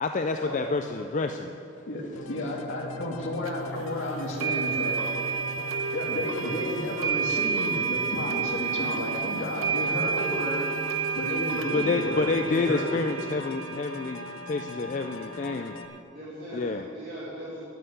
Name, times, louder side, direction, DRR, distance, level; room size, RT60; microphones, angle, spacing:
voice 1, 0.0-1.5 11.7-14.2 14.5-15.7 16.5-16.9, left 3 dB, 35° left, 6 dB, 0.4 m, -28 dB
sound 1, 2.2-15.9, left 3 dB, 85° left, 0.7 m, -41 dB
voice 2, 2.3-5.1 5.9-10.7 11.1-13.0, left 1 dB, 70° left, -2 dB, 2.1 m, -32 dB
sound 2, 3.5-3.6 4.4-16.0, right 6 dB, 85° right, 0.6 m, -31 dB
voice 3, 6.2-7.0 16.1-17.6, equal, 45° right, -10 dB, 2.6 m, -40 dB
10.5 x 9.3 x 6.8 m, 2.6 s
head